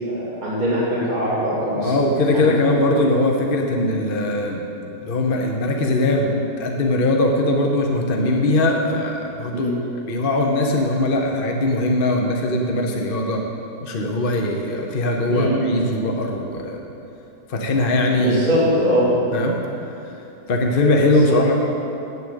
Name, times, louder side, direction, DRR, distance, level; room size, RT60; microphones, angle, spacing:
voice 1, 0.0-1.9 2.3-2.5 9.5-9.7 15.3-15.8 18.2-19.1 21.2-21.4, equal, 25° right, -12 dB, 2.6 m, -21 dB
voice 2, 1.8-4.7 5.0-9.7 10.1-13.4 13.8-16.8 17.5-18.4 19.3-19.6 20.5-21.6, left 2 dB, 45° left, 1 dB, 0.7 m, -20 dB
8.6 x 7.0 x 8.1 m, 2.8 s
omnidirectional pair, 1.9 m